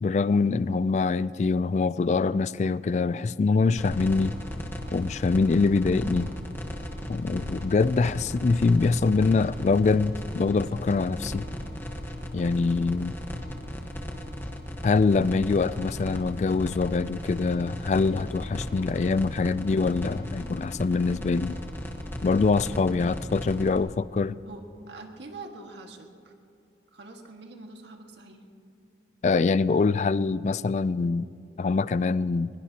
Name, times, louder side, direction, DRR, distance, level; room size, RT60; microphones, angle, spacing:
voice 1, 0.0-4.3 4.9-6.3 7.1-11.4 12.3-13.1 14.8-21.6 22.2-24.4 29.2-31.3 31.6-32.5, left 4 dB, 40° left, 0.3 m, -24 dB
sound 1, 3.8-23.8, equal, 10° left, 1.2 m, -36 dB
voice 2, 24.4-26.3 26.9-28.4, right 2 dB, 85° right, 1.8 m, -44 dB
22.0 x 21.5 x 2.9 m
head